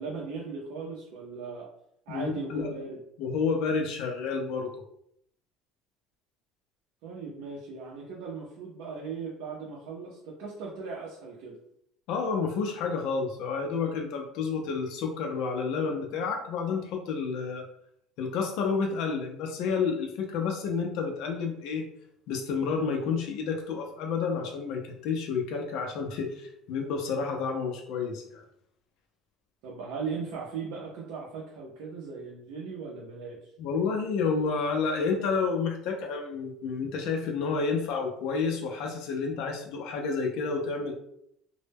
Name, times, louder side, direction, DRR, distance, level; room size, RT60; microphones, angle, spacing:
voice 1, 0.0-1.7 2.1-3.0 7.0-11.6 29.6-33.5, right 5 dB, 80° right, -3 dB, 0.5 m, -38 dB
voice 2, 2.1-2.7 3.2-4.7 12.1-17.7 18.2-21.8 22.3-28.4 33.6-40.9, left 5 dB, 60° left, 2 dB, 0.4 m, -30 dB
2.1 x 2.0 x 3.3 m, 0.72 s
cardioid pair, 160°, 0 cm